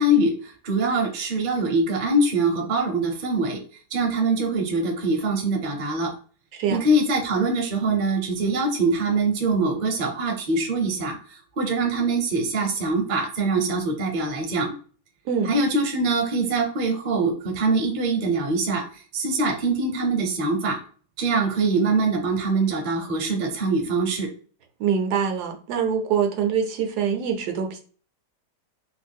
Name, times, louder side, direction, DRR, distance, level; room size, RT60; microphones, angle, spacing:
voice 1, 0.0-3.6 3.9-6.1 6.7-14.7 15.4-20.8 21.2-24.3, right 2 dB, 45° right, 2 dB, 0.6 m, -23 dB
voice 2, 6.5-6.9 15.3-15.5 24.8-27.8, right 7 dB, 75° right, 4 dB, 1.1 m, -24 dB
3.0 x 2.2 x 3.5 m, 0.41 s
omnidirectional pair, 1.8 m